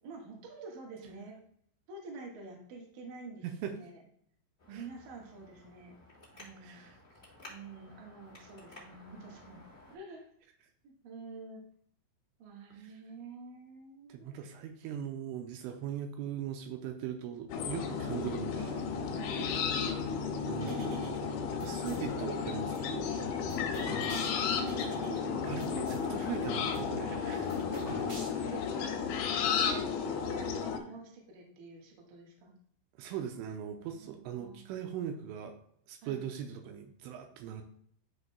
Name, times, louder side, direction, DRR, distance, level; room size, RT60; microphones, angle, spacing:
voice 1, 0.0-1.4 1.9-4.0 4.7-6.0 6.3-6.8 7.5-10.2 10.8-11.6 12.4-14.5 18.1-18.4 19.1-19.5 24.1-24.8 25.2-25.5 27.5-28.9 29.3-32.5 33.9-34.7 36.0-36.2, right 4 dB, 60° right, 0 dB, 2.6 m, -48 dB
voice 2, 3.4-3.8 4.7-4.8 6.6-7.0 12.7-12.9 14.1-18.9 19.4-19.5 19.9-20.1 20.5-21.1 21.6-23.0 25.5-27.6 28.2-28.5 33.0-35.6 35.9-37.6, right 9 dB, 85° right, 5 dB, 3.1 m, -40 dB
Traffic noise roadway noise, 4.6-10.0, left 1 dB, 15° left, 2.0 m, -55 dB
sound 1, 17.5-30.8, left 6 dB, 80° left, 3.2 m, -33 dB
sound 2, 20.6-22.0 22.6-26.0 26.3-26.4 26.6-28.6, right 1 dB, 40° right, 2.5 m, -44 dB
12.5 x 5.3 x 2.3 m, 0.65 s
omnidirectional pair, 5.7 m